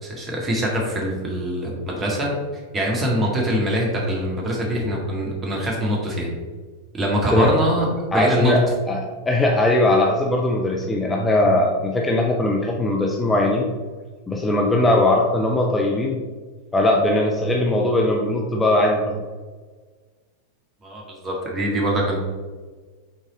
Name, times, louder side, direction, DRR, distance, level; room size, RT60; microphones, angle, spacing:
voice 1, 0.0-2.3 2.7-6.3 6.9-7.9 8.1-8.6 20.8-22.2, equal, 20° right, -2 dB, 1.7 m, -23 dB
voice 2, 8.1-13.7 14.3-16.2 16.7-19.2, left 1 dB, 10° left, 0 dB, 0.6 m, -20 dB
6.1 x 4.0 x 3.8 m, 1.4 s
figure-of-eight pair, 90°, 0 cm